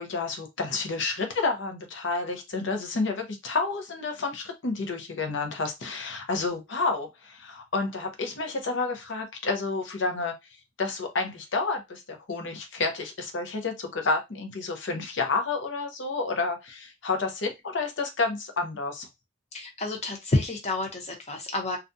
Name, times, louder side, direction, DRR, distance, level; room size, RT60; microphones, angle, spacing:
voice 1, 0.0-10.3 10.8-19.1, left 3 dB, 85° left, 0.7 m, -30 dB
voice 2, 19.5-21.8, left 2 dB, 35° left, 0.8 m, -29 dB
2.4 x 2.2 x 2.6 m
head